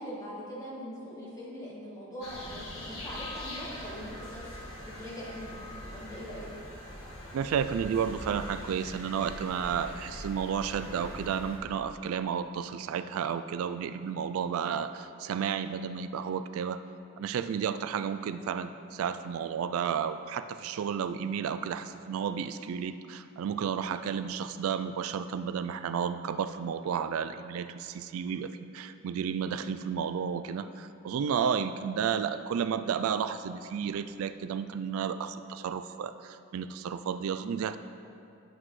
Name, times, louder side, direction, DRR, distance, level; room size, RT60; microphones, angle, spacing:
voice 1, 0.0-4.7 5.0-6.5, equal, 15° left, -7 dB, 1.9 m, -42 dB
sound 1, 2.2-11.6, left 1 dB, 80° left, 1.8 m, -42 dB
voice 2, 7.3-16.8 17.2-37.8, right 7 dB, 80° right, 11 dB, 0.3 m, -32 dB
11.0 x 7.8 x 3.2 m, 2.6 s
head